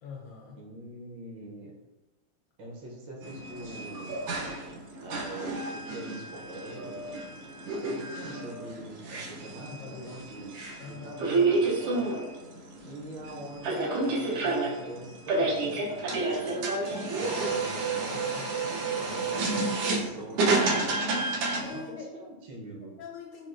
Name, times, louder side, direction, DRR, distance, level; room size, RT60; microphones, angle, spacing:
voice 1, 0.0-0.6 9.7-10.1 10.4-10.5 10.8-11.1 17.3-17.4 21.6-22.1 23.0-23.5, left 5 dB, 75° left, 0 dB, 1.1 m, -43 dB
voice 2, 0.5-1.7 2.6-4.3 5.0-6.9 7.8-12.1 12.8-16.8 17.2-18.5 19.0-21.3 21.7-22.9, right 1 dB, 70° right, -2 dB, 1.3 m, -44 dB
sound 1, 3.2-21.8, right 3 dB, 85° right, 1.6 m, -30 dB
6.1 x 2.3 x 2.4 m, 1.1 s
omnidirectional pair, 2.3 m